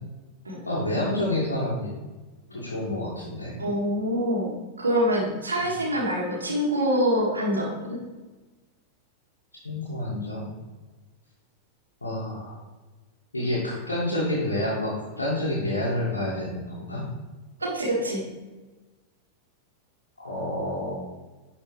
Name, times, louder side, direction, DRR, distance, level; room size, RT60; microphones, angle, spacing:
voice 1, 0.6-1.9 2.5-3.6 9.6-10.5 12.0-12.6 13.3-17.0 20.2-20.9, left 1 dB, 80° left, -6 dB, 1.6 m, -28 dB
voice 2, 3.6-4.5 4.8-8.0 17.6-18.2, equal, 75° right, -2 dB, 1.7 m, -25 dB
11.0 x 4.1 x 3.1 m, 1.2 s
figure-of-eight pair, 90°, 0 cm